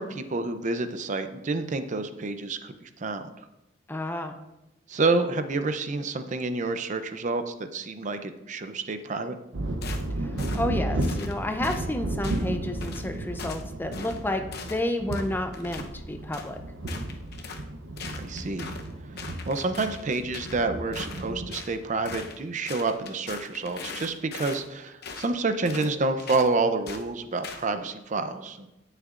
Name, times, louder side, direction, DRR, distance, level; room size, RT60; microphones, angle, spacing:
voice 1, 0.0-3.3 4.9-9.4 18.1-18.7 19.5-28.7, right 3 dB, 40° right, 9 dB, 0.6 m, -28 dB
voice 2, 3.9-4.4 10.2-16.6, left 1 dB, 10° left, 6 dB, 0.6 m, -31 dB
sound 1, 9.5-22.3, right 1 dB, 85° right, 0.8 m, -33 dB
sound 2, 9.8-10.1 10.4-10.7 11.0-11.3 11.6-11.8 12.2-12.4 12.8-13.1 13.4-13.6 13.9-14.2 14.5-14.8 15.1-15.9 16.3-16.5 16.9-17.6 18.0-18.9 19.2-20.6 20.9-21.7 22.0-22.4 22.7-24.6 25.0-25.3 25.6-25.9 26.2-26.5 26.9-27.0 27.4-27.6, left 4 dB, 60° left, 0.9 m, -40 dB
16.5 x 6.6 x 2.5 m, 0.94 s
head